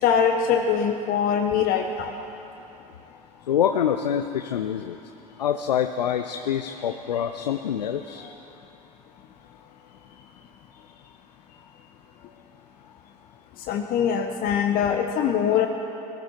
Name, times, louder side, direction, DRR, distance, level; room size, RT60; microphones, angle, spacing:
voice 1, 0.0-2.1 13.7-15.7, left 7 dB, 45° left, 4 dB, 1.0 m, -22 dB
voice 2, 3.5-5.0 5.4-8.3, left 9 dB, 80° left, 7 dB, 0.5 m, -25 dB
19.5 x 13.5 x 4.4 m, 2.8 s
figure-of-eight pair, 75°, 21 cm